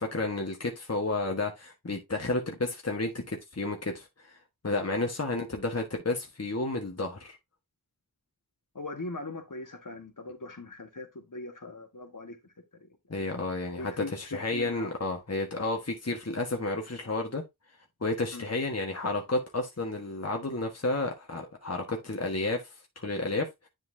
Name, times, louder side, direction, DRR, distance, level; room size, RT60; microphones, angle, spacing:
voice 1, 0.0-4.4 4.6-7.4 13.1-17.4 18.0-23.7, left 2 dB, 45° left, 1.4 m, -31 dB
voice 2, 8.7-12.9 13.8-14.9 18.3-18.5, left 2 dB, 60° left, 1.7 m, -41 dB
10.0 x 4.4 x 2.7 m
wide cardioid pair, 45°, 36 cm